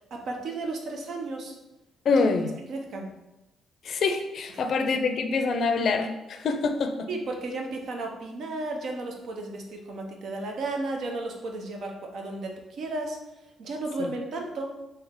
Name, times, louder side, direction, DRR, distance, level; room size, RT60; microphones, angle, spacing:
voice 1, 0.1-1.5 2.2-2.3 2.7-3.1 7.1-13.2 13.6-14.7, right 2 dB, 65° right, 2 dB, 0.7 m, -34 dB
voice 2, 2.0-2.5 3.8-7.1 14.0-14.1, left 4 dB, 60° left, 6 dB, 0.4 m, -25 dB
3.4 x 2.8 x 3.6 m, 0.97 s
cardioid pair, 90°, 0 cm